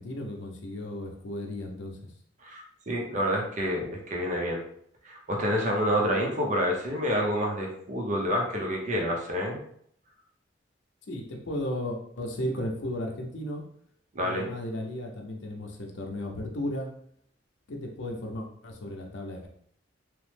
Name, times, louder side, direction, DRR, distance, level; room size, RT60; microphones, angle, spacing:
voice 1, 0.0-2.0 11.1-13.6 14.2-16.9 17.7-19.5, left 1 dB, 70° left, 1 dB, 0.6 m, -35 dB
voice 2, 2.4-4.6 5.0-9.6 14.1-14.5, equal, 40° right, -1 dB, 0.6 m, -28 dB
3.1 x 2.0 x 3.2 m, 0.65 s
head